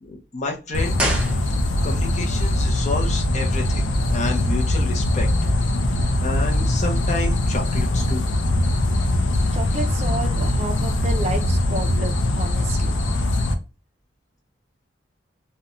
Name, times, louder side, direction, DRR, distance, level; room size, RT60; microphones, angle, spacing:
voice 1, 0.0-1.0 1.8-5.3 6.0-8.3, left 3 dB, 40° left, 2 dB, 0.6 m, -30 dB
sound 1, 0.7-13.6, left 1 dB, 85° left, 0.5 m, -21 dB
sound 2, 0.9-2.0 2.3-2.4, right 1 dB, 5° right, 0.8 m, -27 dB
voice 2, 9.5-12.9, right 2 dB, 35° right, 4 dB, 0.4 m, -31 dB
2.5 x 2.2 x 2.9 m, 0.32 s
head